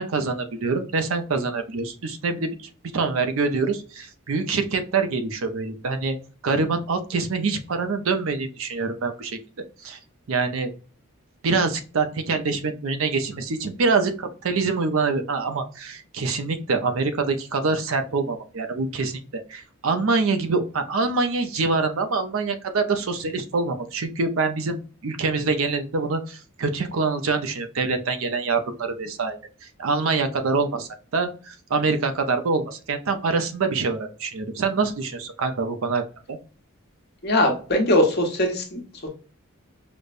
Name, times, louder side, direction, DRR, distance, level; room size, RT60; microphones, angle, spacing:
voice 1, 0.0-6.2 6.4-9.4 9.8-10.0 10.3-10.7 11.4-19.2 19.5-24.8 25.0-36.0 36.3-36.4, right 4 dB, 70° right, 8 dB, 0.5 m, -25 dB
voice 2, 37.2-39.1, left 1 dB, 45° left, 2 dB, 0.9 m, -21 dB
5.1 x 2.1 x 2.4 m, 0.38 s
head